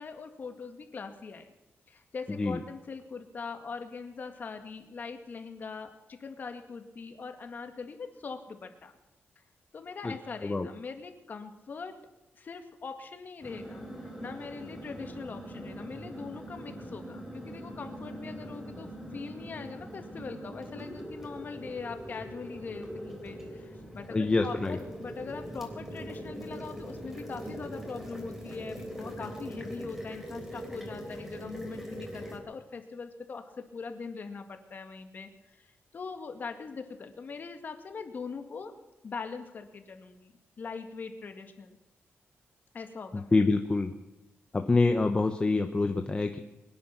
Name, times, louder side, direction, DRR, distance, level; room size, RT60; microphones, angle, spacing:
voice 1, 0.0-1.5 1.9-8.9 9.7-11.9 12.3-13.8 14.2-38.7 39.0-41.8 42.7-43.4, left 5 dB, 45° left, 6 dB, 2.0 m, -41 dB
sound 1, 13.4-32.4, equal, 10° right, 3.4 m, -42 dB
voice 2, 24.1-24.8 43.1-43.9 44.5-46.4, left 3 dB, 20° left, 5 dB, 0.9 m, -26 dB
23.0 x 10.5 x 5.9 m, 0.99 s
wide cardioid pair, 155°, 5 cm